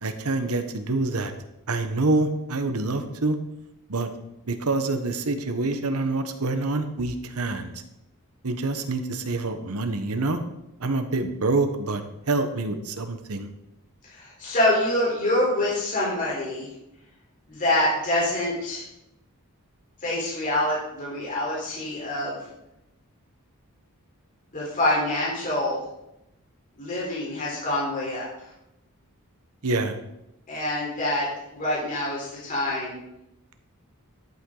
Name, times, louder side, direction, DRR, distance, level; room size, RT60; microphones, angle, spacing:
voice 1, 0.0-1.3 1.7-3.4 3.9-4.1 4.5-7.8 8.4-10.4 10.8-13.5 29.6-29.9, right 2 dB, 75° right, 8 dB, 1.1 m, -26 dB
voice 2, 14.1-16.7 17.5-18.8 20.0-22.4 24.5-25.8 26.8-28.3 30.5-31.3 31.5-33.0, left 1 dB, 40° left, -6 dB, 4.0 m, -26 dB
12.0 x 8.3 x 3.9 m, 0.86 s
head